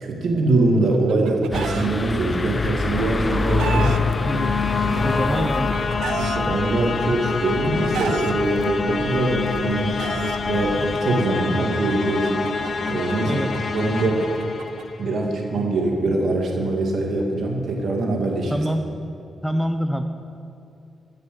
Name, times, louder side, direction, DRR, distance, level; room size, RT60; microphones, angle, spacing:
voice 1, 0.0-4.0 4.9-5.4 6.2-10.1 10.4-12.3 12.9-13.4 13.7-14.3 15.0-18.6, right 2 dB, 65° right, 0 dB, 2.3 m, -23 dB
Chicken rooster, 0.7-1.9 2.9-4.0 5.0-6.4 7.3-8.3 9.3-10.4 11.5-14.8, right 8 dB, 85° right, 0.6 m, -32 dB
sound 1, 1.5-11.0, left 3 dB, 30° left, 0.4 m, -27 dB
sound 2, 2.2-15.3, left 5 dB, 55° left, 0.9 m, -27 dB
voice 2, 4.3-4.6 5.0-5.8 6.3-6.4 13.2-13.5 18.5-18.9 19.4-20.0, equal, ahead, 6 dB, 0.9 m, -25 dB
15.5 x 6.7 x 7.8 m, 2.5 s
cardioid pair, 60°, 0 cm